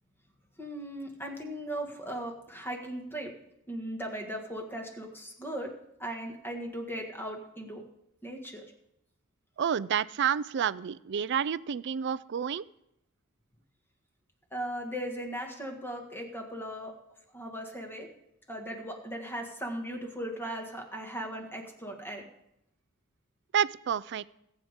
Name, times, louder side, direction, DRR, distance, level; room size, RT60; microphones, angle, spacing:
voice 1, 0.6-3.4 3.7-7.8 8.2-8.6 14.5-17.0 17.3-18.1 18.5-22.3, right 1 dB, 10° left, 2 dB, 1.8 m, -38 dB
voice 2, 9.6-12.6 23.5-24.3, right 8 dB, 55° right, 18 dB, 0.4 m, -29 dB
21.0 x 8.3 x 3.7 m, 0.82 s
head